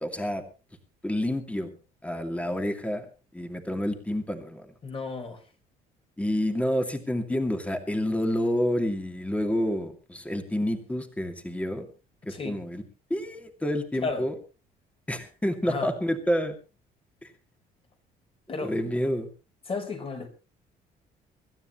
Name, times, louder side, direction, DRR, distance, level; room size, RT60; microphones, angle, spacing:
voice 1, 0.0-0.4 1.0-1.7 2.0-3.1 3.3-4.7 6.2-11.9 12.3-12.8 13.1-14.3 15.1-16.6 18.6-19.3, equal, 10° left, 2.5 m, -28 dB
voice 2, 4.8-5.4 12.3-12.6 13.9-14.3 15.6-15.9 18.5-18.8 19.7-20.3, left 4 dB, 35° left, 4.2 m, -33 dB
25.5 x 13.0 x 3.1 m
cardioid pair, 110°, 17 cm